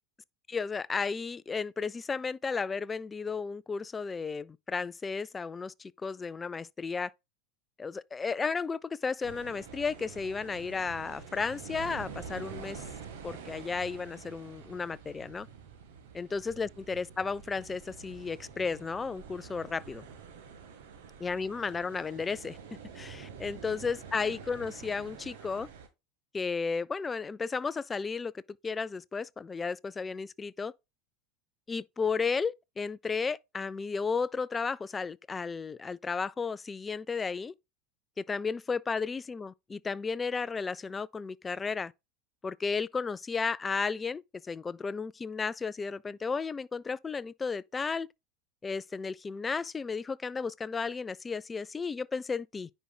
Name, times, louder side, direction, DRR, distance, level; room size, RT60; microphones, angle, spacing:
voice 1, 0.5-7.1 7.8-12.8 13.2-15.5 16.1-20.1 21.2-22.6 22.9-25.7 26.3-28.3 28.6-30.7 31.7-37.5 38.2-41.9 42.4-48.1 48.6-52.7, left 5 dB, 20° left, 0.4 m, -33 dB
sound 1, 9.2-25.9, right 6 dB, 65° right, 1.5 m, -47 dB
10.0 x 4.5 x 2.2 m
hypercardioid pair, 80°, 0 cm